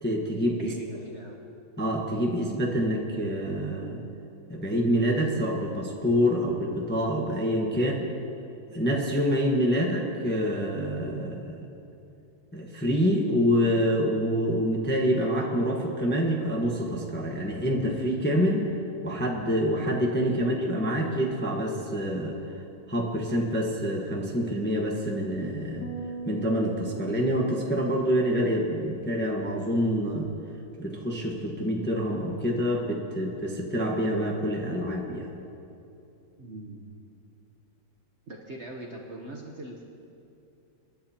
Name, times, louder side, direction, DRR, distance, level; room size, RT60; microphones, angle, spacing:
voice 1, 0.0-0.7 1.8-4.0 4.5-7.9 8.7-11.6 12.5-18.7 19.0-22.4 22.9-25.9 26.3-30.3 30.8-35.3, equal, 10° left, 0 dB, 0.8 m, -26 dB
voice 2, 0.6-1.4 7.7-7.8 20.3-20.4 36.4-36.8 38.3-39.8, right 1 dB, 45° right, 0 dB, 1.0 m, -41 dB
sound 1, 25.8-29.2, right 4 dB, 55° left, 1.7 m, -41 dB
28.0 x 10.5 x 2.9 m, 2.7 s
omnidirectional pair, 2.1 m